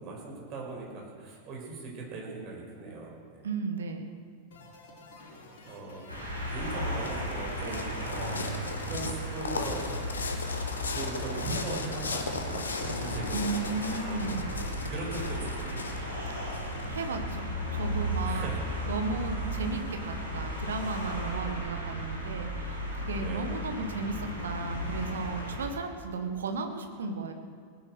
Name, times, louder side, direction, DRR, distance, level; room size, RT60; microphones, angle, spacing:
voice 1, 0.0-3.5 5.6-10.1 10.9-15.8 18.2-19.0 23.2-23.6, right 3 dB, 40° right, -1 dB, 5.4 m, -40 dB
voice 2, 3.4-4.1 13.3-14.4 16.4-16.5 16.9-18.5 18.9-27.3, right 4 dB, 65° right, 6 dB, 1.6 m, -35 dB
sound 1, 4.5-14.0, left 2 dB, 55° left, 4.6 m, -49 dB
sound 2, 6.1-25.7, equal, 90° right, 4.2 m, -35 dB
sound 3, 6.5-17.3, left 4 dB, 70° left, 1.5 m, -37 dB
19.0 x 10.5 x 6.4 m, 2.1 s
figure-of-eight pair, 90°, 0 cm